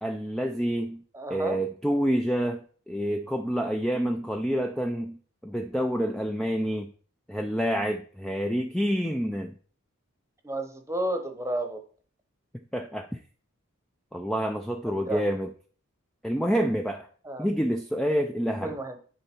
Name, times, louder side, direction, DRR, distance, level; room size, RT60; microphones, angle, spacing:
voice 1, 0.0-1.0 1.3-5.2 5.4-6.9 7.3-9.5 12.7-13.2 14.1-15.5 16.2-17.1 17.4-18.8, equal, 5° left, 4 dB, 0.4 m, -28 dB
voice 2, 1.1-1.6 10.4-11.8 15.1-15.2 17.2-17.5 18.6-19.0, right 1 dB, 15° right, 6 dB, 0.9 m, -31 dB
10.0 x 4.0 x 4.5 m, 0.44 s
head